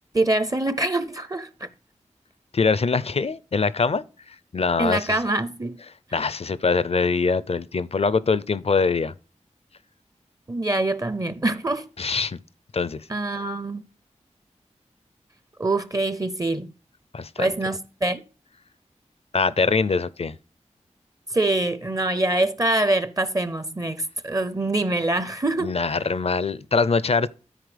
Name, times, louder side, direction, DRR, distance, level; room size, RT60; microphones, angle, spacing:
voice 1, 0.1-1.7 4.8-5.8 10.5-11.9 13.1-13.8 15.6-16.7 17.4-18.2 21.3-25.8, right 2 dB, 30° right, 0.6 m, -24 dB
voice 2, 2.5-5.2 6.1-9.1 12.0-12.4 12.7-13.4 17.1-17.5 19.3-20.4 25.6-27.3, left 4 dB, 55° left, 0.5 m, -23 dB
13.0 x 4.7 x 3.3 m
wide cardioid pair, 50°, 13 cm